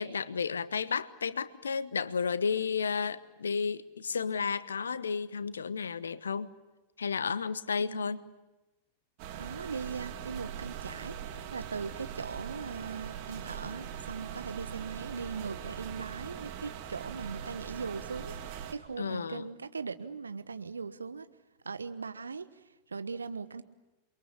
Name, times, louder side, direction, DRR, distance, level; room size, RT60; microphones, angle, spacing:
voice 1, 0.0-6.5 7.0-8.2 19.0-19.5, left 5 dB, 70° left, 1.1 m, -32 dB
sound 1, 9.2-18.7, right 9 dB, 45° right, 3.0 m, -41 dB
voice 2, 9.4-11.2 11.5-18.4 18.7-21.3 21.6-22.5 22.9-23.6, right 5 dB, 75° right, 1.2 m, -39 dB
28.5 x 23.0 x 8.5 m
figure-of-eight pair, 90°, 0 cm